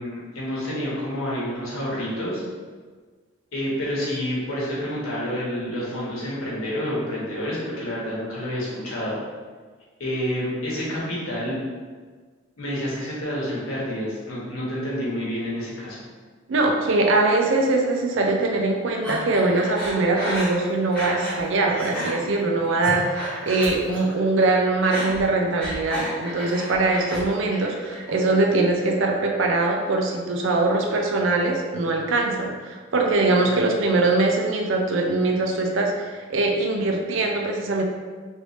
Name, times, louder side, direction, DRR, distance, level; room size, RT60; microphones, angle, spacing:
voice 1, 0.0-2.4 3.5-9.2 10.0-11.6 12.6-16.1, equal, 85° left, -6 dB, 1.1 m, -28 dB
voice 2, 16.5-37.8, right 2 dB, 65° right, 1 dB, 0.5 m, -22 dB
Breathing, 19.0-21.4 21.7-22.1 22.6-24.1 24.4-27.2 27.5-28.1, equal, 5° left, 1.0 m, -32 dB
3.2 x 2.6 x 3.1 m, 1.5 s
head